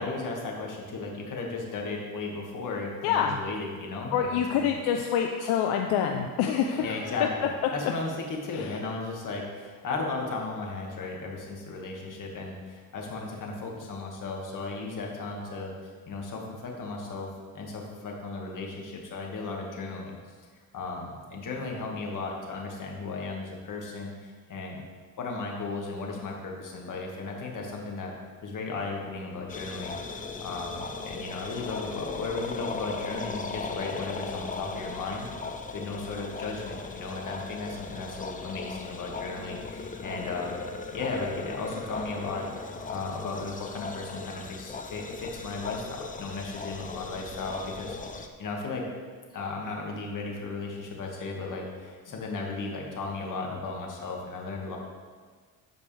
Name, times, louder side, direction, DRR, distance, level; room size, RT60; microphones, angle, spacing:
voice 1, 0.0-4.7 6.8-15.7 16.1-20.1 20.7-24.8 25.2-28.1 28.4-30.0 30.2-35.3 35.7-40.6 40.9-48.8 49.3-54.8, left 3 dB, 55° left, 0 dB, 2.0 m, -35 dB
voice 2, 3.0-3.4 4.1-7.3 8.5-8.8, left 8 dB, 80° left, 3 dB, 0.7 m, -26 dB
sound 1, 29.5-48.3, left 4 dB, 20° left, 0.7 m, -38 dB
13.0 x 5.1 x 3.4 m, 1.6 s
supercardioid pair, 80°, 38 cm